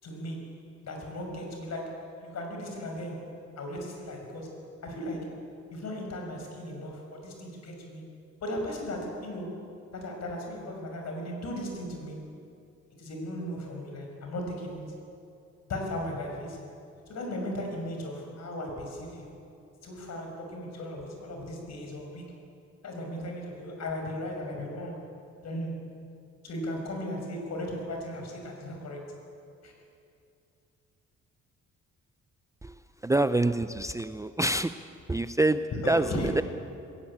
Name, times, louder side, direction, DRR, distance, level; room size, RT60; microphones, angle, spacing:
voice 1, 0.0-8.1 8.4-9.6 9.9-12.2 13.0-14.9 15.7-16.7 17.1-19.4 19.8-22.3 22.8-25.0 25.4-25.8 26.4-29.1 29.6-29.7 35.7-36.4, left 1 dB, 60° left, 2 dB, 6.1 m, -37 dB
voice 2, 33.0-34.8 35.1-36.4, right 2 dB, 10° right, 11 dB, 0.6 m, -26 dB
21.0 x 17.0 x 8.8 m, 2.6 s
cardioid pair, 90°, 30 cm